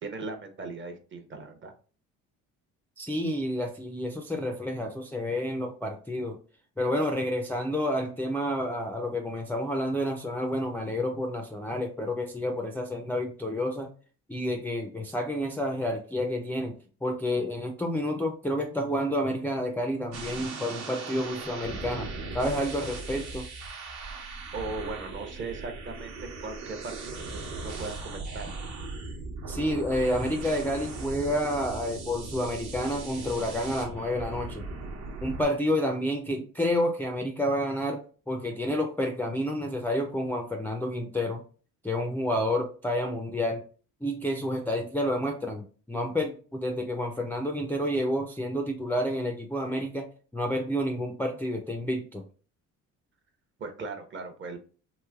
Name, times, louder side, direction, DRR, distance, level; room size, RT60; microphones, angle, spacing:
voice 1, 0.0-1.7 24.5-26.1 26.4-28.5 53.6-54.6, right 3 dB, 35° right, 6 dB, 0.7 m, -38 dB
voice 2, 3.0-6.4 6.8-13.9 14.3-22.1 22.3-23.4 29.5-34.7 35.2-41.4 41.8-43.6 44.0-52.2, left 1 dB, 5° left, 1 dB, 0.4 m, -29 dB
sound 1, 20.1-35.4, right 3 dB, 60° right, 1.0 m, -38 dB
3.1 x 2.9 x 2.3 m, 0.39 s
cardioid pair, 100°, 33 cm